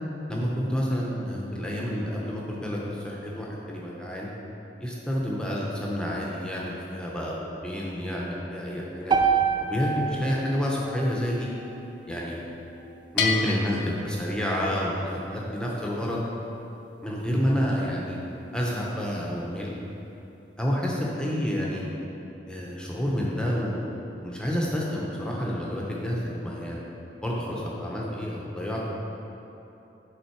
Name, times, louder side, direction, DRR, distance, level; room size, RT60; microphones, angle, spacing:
voice 1, 0.3-4.3 4.8-7.4 7.6-9.1 9.6-11.5 12.1-12.4 13.1-16.2 17.0-18.2 18.5-19.7 20.6-21.8 22.5-23.8 24.2-26.8 27.2-28.9, equal, 5° left, -4 dB, 0.8 m, -29 dB
sound 1, 9.1-13.3, right 6 dB, 25° right, 0.3 m, -29 dB
Bell, 13.2-14.9, left 5 dB, 60° left, 0.6 m, -30 dB
8.4 x 3.9 x 4.6 m, 3.0 s
head